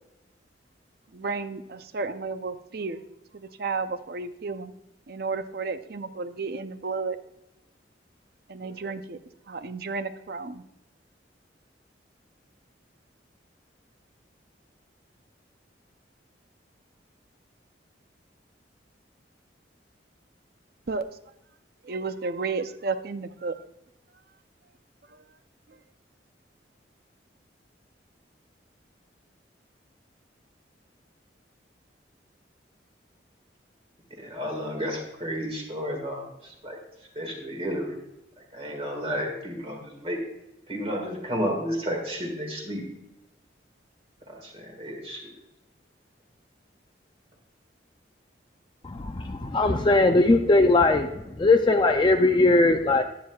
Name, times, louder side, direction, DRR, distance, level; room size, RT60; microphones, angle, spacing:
voice 1, 1.1-3.0 3.3-4.7 5.1-7.2 8.5-9.2 9.5-10.6 20.9-21.1 21.8-23.6 25.1-25.2 25.7-25.8, right 4 dB, 55° right, 11 dB, 0.6 m, -32 dB
voice 2, 34.2-36.8 37.2-37.9 38.5-40.2 40.7-42.9 44.4-45.2, equal, 30° right, 1 dB, 1.9 m, -32 dB
voice 3, 48.8-51.1 51.4-53.0, left 2 dB, 25° left, 5 dB, 0.4 m, -20 dB
11.5 x 9.5 x 2.3 m, 0.90 s
head